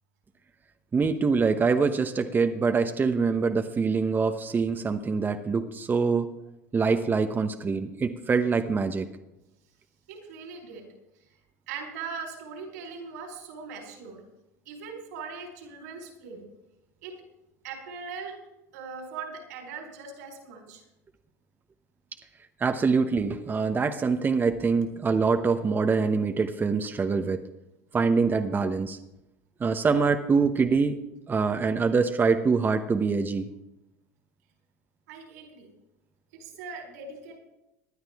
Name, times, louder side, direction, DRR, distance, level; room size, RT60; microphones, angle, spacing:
voice 1, 0.9-6.3 6.7-9.1 22.6-27.4 27.9-29.0 29.6-31.0 31.3-33.5, right 4 dB, 20° right, 6 dB, 0.9 m, -24 dB
voice 2, 10.1-10.9 11.2-11.4 11.7-14.2 14.7-16.5 17.0-17.1 17.6-18.4 18.7-20.8 35.1-35.7 36.3-37.4, right 5 dB, 80° right, 2 dB, 4.2 m, -40 dB
19.0 x 11.0 x 3.5 m, 0.92 s
hypercardioid pair, 95°, 9 cm